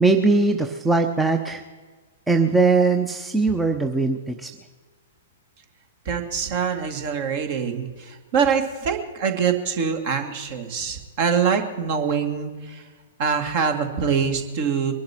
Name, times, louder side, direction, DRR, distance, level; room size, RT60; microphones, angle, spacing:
voice 1, 0.0-1.6 2.3-4.5, right 3 dB, 5° right, 5 dB, 0.9 m, -20 dB
voice 2, 6.1-12.8 13.2-14.9, right 6 dB, 45° right, 6 dB, 2.1 m, -24 dB
22.5 x 11.5 x 4.5 m, 1.4 s
figure-of-eight pair, 110°, 0 cm